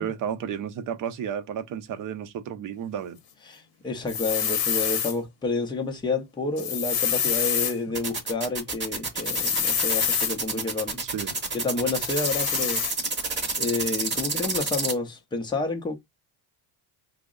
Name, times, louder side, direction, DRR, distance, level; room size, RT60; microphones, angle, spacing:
voice 1, 0.0-3.2 7.9-8.0 11.0-11.4, right 8 dB, 45° right, 0.6 m, -32 dB
voice 2, 3.5-11.0 11.5-12.8 13.1-13.2 13.6-15.9, left 3 dB, 10° left, 0.4 m, -29 dB
sound 1, 4.1-5.1 6.6-7.7 9.2-10.3 12.0-12.9, left 8 dB, 50° left, 0.8 m, -26 dB
sound 2, 7.9-14.9, right 3 dB, 25° right, 0.9 m, -28 dB
3.4 x 2.1 x 3.6 m
cardioid pair, 165°, 46 cm